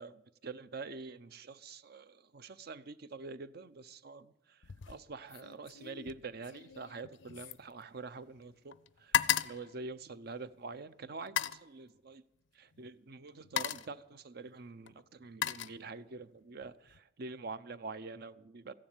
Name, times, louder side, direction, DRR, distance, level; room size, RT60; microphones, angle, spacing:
voice 1, 0.0-4.6 4.9-12.2 12.5-18.7, right 4 dB, 55° right, 0.7 m, -46 dB
sound 1, 4.6-5.0 5.3-8.4 8.7-10.6 11.2-11.7 12.7-12.9 13.3-14.0 14.9-16.2 16.6-17.0, left 10 dB, 75° left, 0.5 m, -36 dB
15.0 x 10.5 x 9.0 m
head